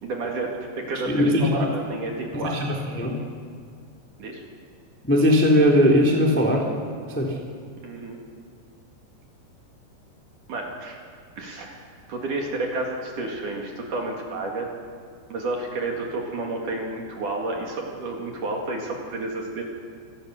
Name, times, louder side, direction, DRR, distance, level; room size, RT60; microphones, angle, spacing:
voice 1, 0.0-2.6 4.2-4.4 7.8-8.2 10.5-11.0 11.4-14.7 15.3-19.6, right 2 dB, 50° right, 0 dB, 3.1 m, -30 dB
voice 2, 1.1-1.5 2.4-3.1 5.0-6.6 7.1-7.3, equal, 5° left, -1 dB, 1.4 m, -19 dB
27.5 x 18.0 x 6.6 m, 2.1 s
omnidirectional pair, 5.6 m